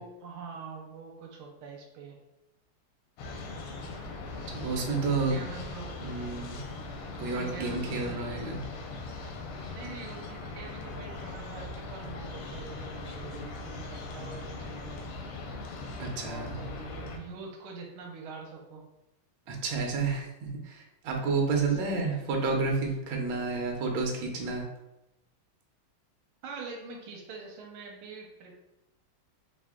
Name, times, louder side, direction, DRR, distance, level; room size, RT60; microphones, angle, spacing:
voice 1, 0.0-2.2 4.6-6.0 7.3-8.6 9.7-15.1 16.2-18.8 21.5-22.3 26.4-28.5, right 4 dB, 90° right, 1 dB, 1.6 m, -44 dB
sound 1, 3.2-17.2, left 3 dB, 85° left, 1.6 m, -40 dB
voice 2, 4.5-5.4 6.0-6.6 7.2-8.6 16.0-16.6 19.5-24.6, right 4 dB, 70° right, 1 dB, 1.5 m, -30 dB
4.5 x 2.5 x 3.5 m, 0.89 s
omnidirectional pair, 2.3 m